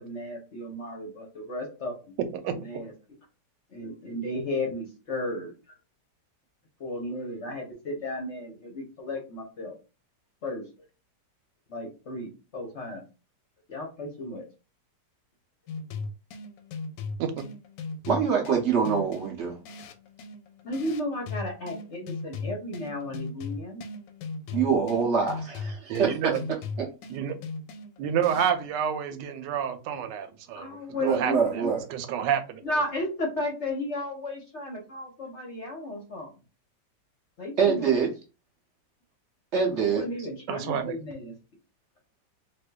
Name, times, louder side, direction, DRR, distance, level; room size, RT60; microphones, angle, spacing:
voice 1, 0.0-2.1 2.5-2.9 3.7-5.5 6.8-9.7 10.4-10.7 11.7-13.0 13.7-14.4 20.6-23.8 30.5-31.7 32.6-36.3 37.4-38.0 39.9-41.3, left 1 dB, 55° left, 1 dB, 0.9 m, -34 dB
sound 1, 15.7-28.7, left 3 dB, 85° left, 1.2 m, -38 dB
voice 2, 18.1-19.6 24.5-26.3 31.0-31.8 37.6-38.1 39.5-40.1, right 6 dB, 55° right, 0 dB, 0.8 m, -25 dB
voice 3, 25.9-26.4 27.1-27.4 28.0-32.6 40.5-41.0, right 8 dB, 90° right, 8 dB, 1.3 m, -29 dB
4.2 x 2.6 x 2.2 m, 0.31 s
omnidirectional pair, 1.9 m